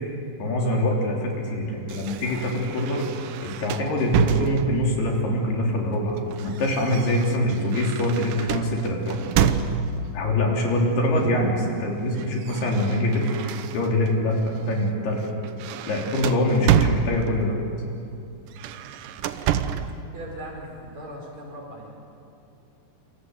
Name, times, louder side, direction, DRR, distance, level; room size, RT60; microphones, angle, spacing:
voice 1, 0.1-3.1 3.4-9.2 10.1-15.2 15.9-17.6, left 1 dB, 60° left, 0 dB, 5.2 m, -24 dB
sound 1, 1.9-5.0 5.9-10.1 11.2-11.5 11.8-14.1 14.6-14.8 15.2-17.6 18.5-20.0, right 8 dB, 85° right, 1.9 m, -28 dB
voice 2, 20.0-22.0, right 1 dB, 40° right, 0 dB, 5.5 m, -39 dB
27.5 x 26.5 x 8.1 m, 2.7 s
omnidirectional pair, 5.2 m